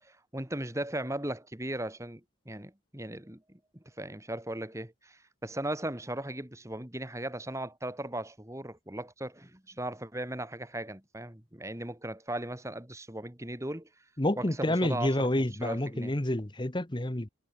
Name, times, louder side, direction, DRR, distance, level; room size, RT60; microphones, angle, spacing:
voice 1, 0.0-3.6 4.0-13.9 14.4-16.2, right 1 dB, 15° right, 2.0 m, -37 dB
voice 2, 14.2-17.3, left 1 dB, 25° left, 1.1 m, -29 dB
head